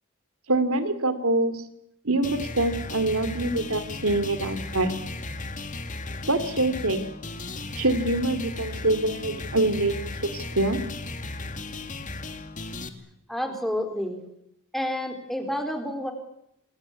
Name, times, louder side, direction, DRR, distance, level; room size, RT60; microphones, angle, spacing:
voice 1, 0.5-1.6 2.0-4.9 6.3-7.0 7.8-10.8, right 2 dB, 90° right, 11 dB, 2.8 m, -25 dB
sound 1, 2.2-12.9, left 2 dB, 35° left, 2.3 m, -35 dB
voice 2, 13.3-14.2 14.7-16.1, equal, ahead, 6 dB, 4.2 m, -29 dB
28.0 x 21.0 x 8.5 m, 0.79 s
head